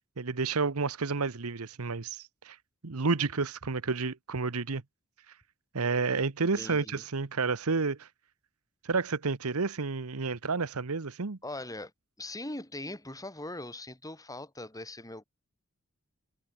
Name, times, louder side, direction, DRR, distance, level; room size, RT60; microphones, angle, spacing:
voice 1, 0.2-2.6 2.8-4.8 5.7-8.1 8.8-11.4, right 4 dB, 75° right, 1.0 m, -30 dB
voice 2, 6.6-7.0 11.4-11.9 12.2-15.2, left 2 dB, 15° left, 6.9 m, -40 dB
head